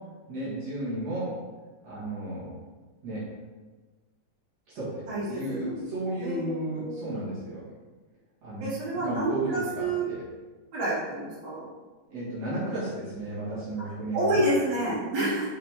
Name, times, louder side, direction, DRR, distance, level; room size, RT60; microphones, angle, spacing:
voice 1, 0.3-1.3 1.8-2.5 3.0-3.2 4.7-7.6 8.4-10.2 12.1-14.5, right 1 dB, 60° right, -10 dB, 3.2 m, -33 dB
voice 2, 5.1-5.8 6.2-7.0 8.6-10.1 10.7-11.7 14.1-15.5, right 1 dB, 40° right, -9 dB, 3.1 m, -29 dB
7.4 x 5.8 x 3.6 m, 1.3 s
omnidirectional pair, 3.4 m